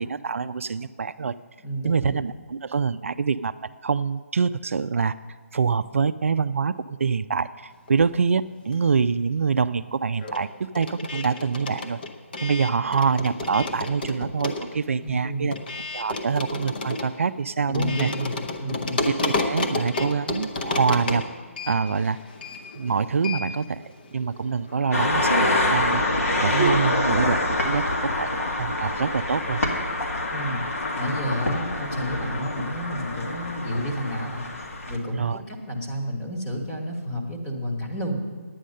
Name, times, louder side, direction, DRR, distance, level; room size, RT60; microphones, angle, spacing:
voice 1, 0.0-1.3 1.8-3.5 3.8-5.1 5.5-12.0 12.4-15.5 15.9-18.1 19.1-21.3 21.6-22.2 22.8-23.8 24.1-26.0 26.4-29.6 35.1-35.4, right 5 dB, 65° right, 12 dB, 0.4 m, -25 dB
voice 2, 1.6-2.2 15.0-15.5 17.7-19.0 30.3-30.6 31.0-34.5 34.9-38.2, equal, 15° left, 0 dB, 1.2 m, -30 dB
sound 1, 7.9-9.1 9.4-26.7, left 2 dB, 40° left, 0.9 m, -32 dB
sound 2, 24.9-35.0, left 2 dB, 70° left, 2.0 m, -26 dB
10.0 x 9.3 x 6.5 m, 1.5 s
hypercardioid pair, 170°, 8 cm